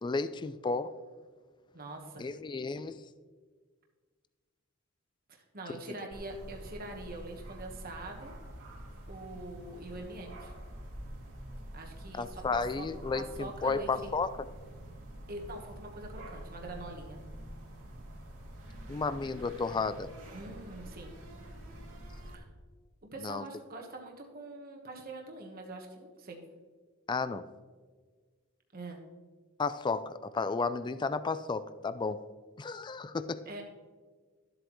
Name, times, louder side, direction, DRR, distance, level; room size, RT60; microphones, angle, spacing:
voice 1, 0.0-0.9 2.2-3.0 12.1-14.3 18.9-20.1 23.2-23.4 27.1-27.4 29.6-32.2 32.6-33.4, left 4 dB, 20° left, 13 dB, 0.3 m, -33 dB
voice 2, 1.7-2.2 5.5-8.3 9.1-10.5 11.7-12.9 13.1-14.1 15.3-17.2 20.3-21.1 22.3-22.5 23.1-26.4 28.7-29.0 33.5-33.6, right 2 dB, 45° right, 1 dB, 1.2 m, -44 dB
sound 1, 6.1-22.4, right 1 dB, 80° right, 2.2 m, -47 dB
12.5 x 8.0 x 3.1 m, 1.5 s
head